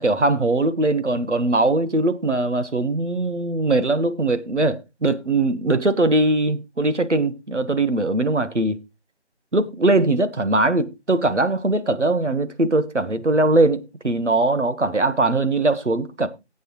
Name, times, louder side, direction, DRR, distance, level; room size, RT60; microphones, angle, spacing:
voice 1, 0.0-8.8 9.5-16.3, right 2 dB, 85° right, 1.6 m, -21 dB
15.5 x 8.4 x 3.1 m
figure-of-eight pair, 165°, 35 cm